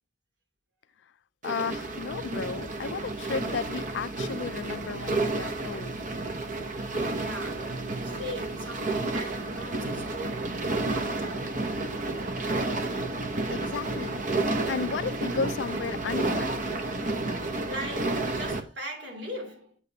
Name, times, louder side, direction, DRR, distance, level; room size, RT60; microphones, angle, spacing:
voice 1, 1.4-6.0 13.5-16.8, left 5 dB, 75° left, 0.4 m, -34 dB
sound 1, 1.4-18.6, right 2 dB, 45° right, 0.8 m, -31 dB
voice 2, 7.1-12.1 17.7-19.8, equal, 75° right, 2.8 m, -41 dB
8.1 x 7.1 x 2.8 m
head